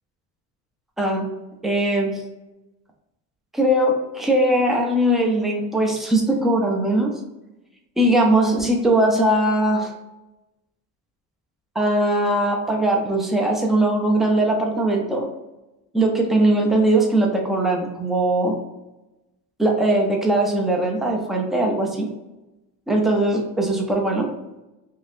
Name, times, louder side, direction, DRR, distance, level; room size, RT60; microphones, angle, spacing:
voice 1, 1.0-1.3 1.6-2.2 3.5-7.1 8.0-9.9 11.8-15.3 15.9-18.6 19.6-22.1 22.9-24.3, right 1 dB, ahead, 0 dB, 0.4 m, -20 dB
2.8 x 2.6 x 3.3 m, 1.0 s
cardioid pair, 150°, 33 cm